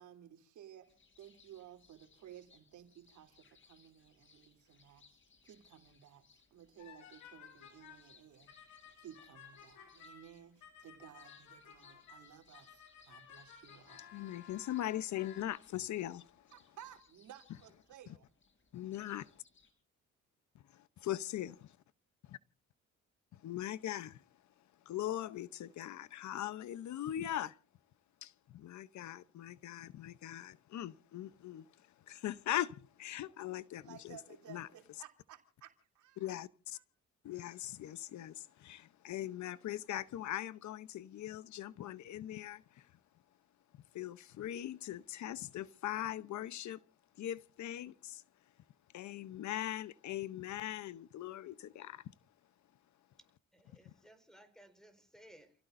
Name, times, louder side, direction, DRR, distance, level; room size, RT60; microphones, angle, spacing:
voice 1, 0.0-8.5 9.0-14.1 16.5-18.3 26.4-26.5 33.8-36.4 36.7-36.8, right 10 dB, 75° right, 3.1 m, -56 dB
sound 1, 0.8-19.7, left 5 dB, 40° left, 5.0 m, -68 dB
sound 2, 6.8-8.2 8.5-15.4, left 8 dB, 90° left, 5.1 m, -56 dB
voice 2, 14.1-16.3 18.7-19.2 20.7-21.6 23.4-24.2 24.9-27.5 28.2-34.2 34.5-34.7 36.2-36.8 37.2-42.9 43.9-46.8 47.2-48.2 48.9-52.0 53.9-54.0, left 12 dB, 70° left, 0.8 m, -40 dB
voice 3, 53.5-55.5, equal, ahead, 4.5 m, -60 dB
29.5 x 16.5 x 2.6 m
cardioid pair, 90°, 30 cm